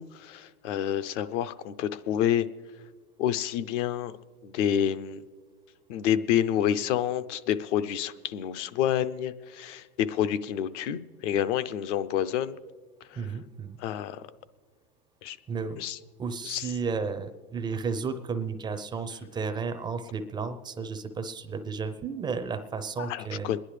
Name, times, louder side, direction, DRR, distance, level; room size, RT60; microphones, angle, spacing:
voice 1, 0.0-2.5 3.2-4.1 4.4-5.2 5.9-12.6 13.1-13.2 13.8-14.2 15.2-15.4 15.8-16.0 16.4-16.7 23.0-23.6, left 10 dB, 55° left, 13 dB, 0.6 m, -28 dB
voice 2, 13.1-13.8 15.5-15.8 16.2-23.5, right 5 dB, 10° right, 9 dB, 0.4 m, -33 dB
27.0 x 10.5 x 3.3 m, 1.5 s
hypercardioid pair, 115°, 44 cm